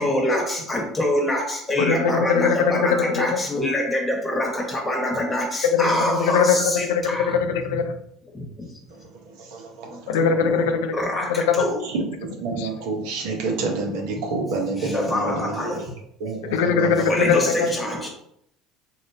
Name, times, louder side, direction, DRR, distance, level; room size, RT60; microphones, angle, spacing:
voice 1, 0.0-7.4 8.3-8.7 10.2-10.3 10.9-11.8 14.9-15.9 17.1-18.1, left 1 dB, 15° left, 0 dB, 1.2 m, -25 dB
voice 2, 1.8-3.4 5.7-8.0 10.1-10.9 11.3-11.7 16.5-17.7, left 6 dB, 80° left, 7 dB, 0.4 m, -21 dB
voice 3, 8.9-10.8 11.8-15.9 16.2-17.8, right 3 dB, 75° right, 1 dB, 0.9 m, -29 dB
3.2 x 2.9 x 2.8 m, 0.70 s
supercardioid pair, 85°, 0 cm